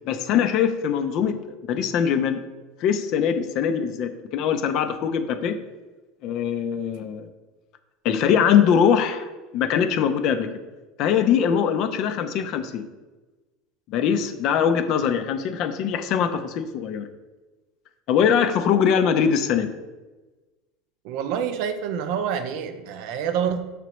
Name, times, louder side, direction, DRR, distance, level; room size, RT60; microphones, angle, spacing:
voice 1, 0.1-1.3 1.7-2.4 2.8-5.6 6.2-7.3 8.0-9.3 9.5-10.5 11.0-12.9 13.9-17.1 18.1-19.7, left 8 dB, 55° left, 9 dB, 0.4 m, -22 dB
voice 2, 21.0-23.6, right 8 dB, 65° right, 9 dB, 0.4 m, -27 dB
5.8 x 3.1 x 3.0 m, 1.2 s
supercardioid pair, 110°, 0 cm